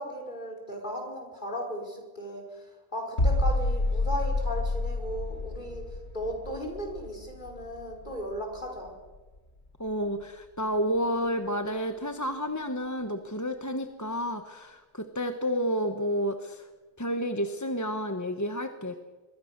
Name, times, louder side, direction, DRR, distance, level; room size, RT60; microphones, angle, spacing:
voice 1, 0.0-2.6 2.9-5.9 6.1-8.9, equal, 45° left, 1 dB, 5.5 m, -36 dB
sound 1, 3.2-8.9 9.1-9.4, left 2 dB, 70° left, 3.1 m, -29 dB
voice 2, 9.8-16.7 17.0-19.0, equal, 15° left, 7 dB, 1.1 m, -30 dB
25.0 x 22.0 x 6.7 m, 1.2 s
omnidirectional pair, 1.2 m